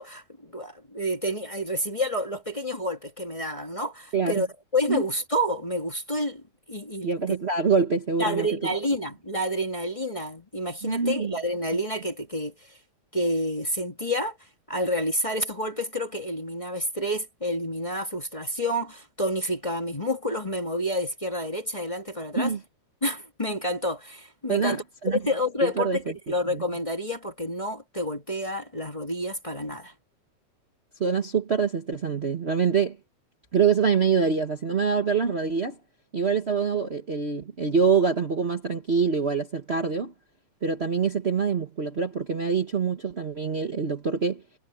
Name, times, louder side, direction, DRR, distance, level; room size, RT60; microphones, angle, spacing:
voice 1, 0.0-4.5 4.7-6.4 6.7-7.4 8.2-12.5 13.1-14.4 14.7-22.5 23.0-29.9, equal, 15° left, 1.3 m, -29 dB
voice 2, 7.0-8.5 10.8-11.3 22.4-22.6 24.5-25.2 25.6-26.0 26.5-26.6 31.0-33.0 33.5-35.7 36.1-40.1 40.6-44.4, right 5 dB, 70° right, 0.6 m, -25 dB
omnidirectional pair, 3.5 m